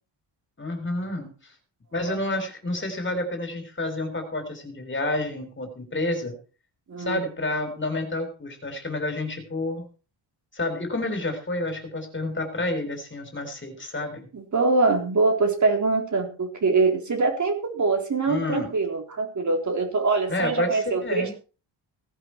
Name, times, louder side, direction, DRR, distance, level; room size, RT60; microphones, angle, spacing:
voice 1, 0.6-1.3 1.9-6.4 7.0-9.8 10.5-14.3 18.3-18.7 20.3-21.3, left 2 dB, 25° left, 7 dB, 3.7 m, -29 dB
voice 2, 6.9-7.2 14.3-21.3, right 3 dB, 35° right, 3 dB, 4.0 m, -24 dB
17.5 x 11.0 x 4.6 m, 0.36 s
wide cardioid pair, 160°, 47 cm